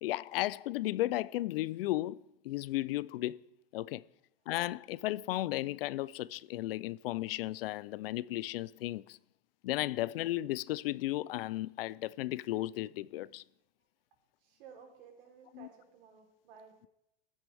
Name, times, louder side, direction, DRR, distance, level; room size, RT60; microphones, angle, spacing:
voice 1, 0.0-2.2 2.4-3.4 3.7-4.0 4.5-9.2 9.6-13.4 15.5-15.7, left 16 dB, 70° left, 0.5 m, -34 dB
voice 2, 14.4-16.7, right 7 dB, 65° right, 3.8 m, -55 dB
15.0 x 11.5 x 3.5 m
supercardioid pair, 140°, 30 cm